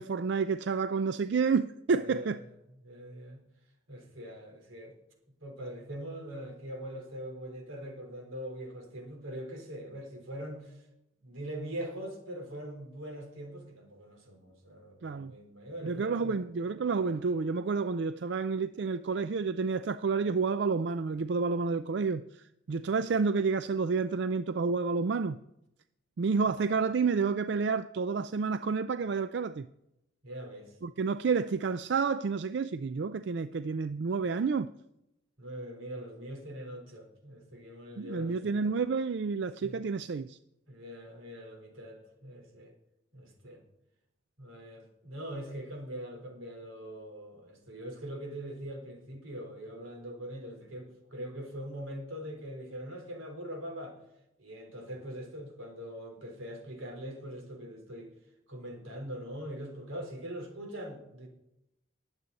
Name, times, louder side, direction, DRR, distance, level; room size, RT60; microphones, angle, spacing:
voice 1, 0.0-2.4 15.0-15.3 15.8-25.4 26.2-29.7 30.8-34.7 38.0-40.4, right 5 dB, 60° right, 0.4 m, -30 dB
voice 2, 2.0-2.4 2.8-3.4 3.9-5.0 5.4-10.8 11.2-16.4 22.8-23.0 26.4-26.5 30.2-30.8 35.4-38.7 39.6-39.8 40.7-42.7 43.1-43.6 44.4-54.0 54.4-58.1 58.5-61.3, equal, 90° right, 4.1 m, -42 dB
20.5 x 8.0 x 4.1 m
head